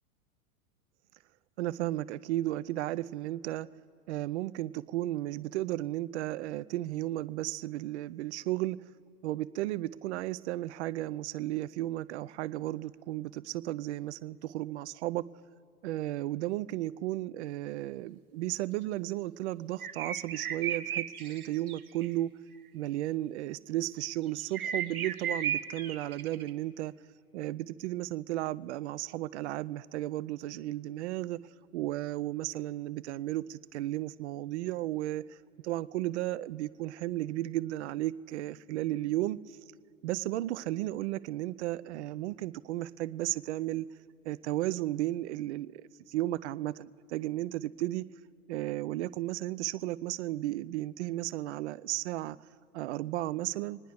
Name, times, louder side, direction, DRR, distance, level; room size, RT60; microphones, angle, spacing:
voice 1, 1.6-3.7 4.1-8.8 9.2-15.3 15.8-22.3 22.7-26.9 27.3-31.4 31.7-35.2 35.6-39.4 40.0-43.9 44.3-48.1 48.5-52.4 52.7-53.8, right 15 dB, 50° right, 16 dB, 0.5 m, -34 dB
sound 1, 19.8-22.1 24.5-26.5, right 8 dB, 75° right, 1.0 m, -34 dB
26.5 x 10.0 x 3.5 m, 2.7 s
figure-of-eight pair, 95°, 43 cm